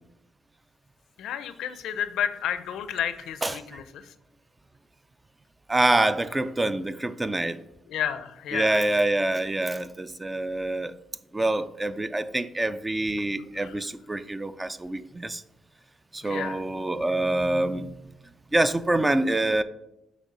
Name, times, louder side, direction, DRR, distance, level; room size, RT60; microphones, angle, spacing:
voice 1, 1.2-4.1 7.9-9.0 13.4-13.8 16.2-16.6, left 9 dB, 80° left, 12 dB, 0.5 m, -32 dB
voice 2, 5.7-7.6 8.5-10.9 11.3-15.4 16.1-18.0 18.5-19.6, right 2 dB, 20° right, 13 dB, 0.4 m, -26 dB
6.3 x 3.1 x 5.5 m, 0.89 s
cardioid pair, 90°, 0 cm